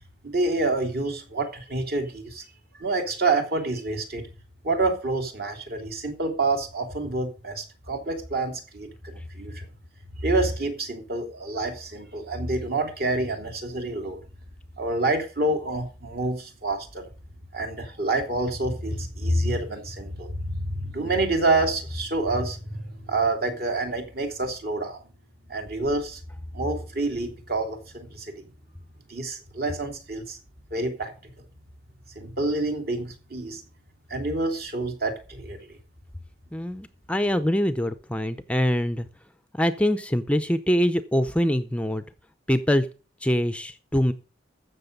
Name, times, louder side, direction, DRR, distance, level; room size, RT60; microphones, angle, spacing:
voice 1, 0.2-2.4 2.8-4.2 4.6-9.7 10.2-14.2 14.8-17.1 17.5-25.0 25.5-26.2 26.5-28.4 29.1-30.4 30.7-31.3 32.1-33.6 34.1-35.8, right 2 dB, 55° right, 3.0 m, -27 dB
voice 2, 36.5-39.1 39.6-42.0 42.5-42.9 43.2-44.1, equal, 5° left, 0.6 m, -24 dB
15.0 x 6.6 x 5.3 m
head